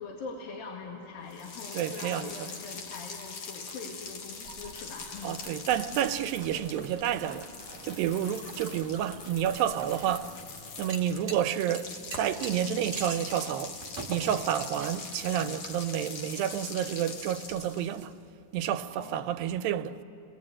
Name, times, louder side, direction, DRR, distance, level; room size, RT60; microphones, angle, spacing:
voice 1, 0.0-5.4 18.9-19.3, left 4 dB, 80° left, 3.7 m, -42 dB
sound 1, 1.3-18.1, left 5 dB, 55° left, 2.2 m, -43 dB
voice 2, 1.7-2.5 5.2-7.5 7.8-10.3 10.8-13.8 14.1-18.1 18.5-20.0, right 10 dB, 85° right, 2.5 m, -30 dB
sound 2, 4.4-10.4, right 1 dB, 25° left, 5.8 m, -50 dB
sound 3, 6.1-15.8, right 4 dB, 35° right, 1.8 m, -46 dB
28.5 x 21.0 x 8.7 m
omnidirectional pair, 4.1 m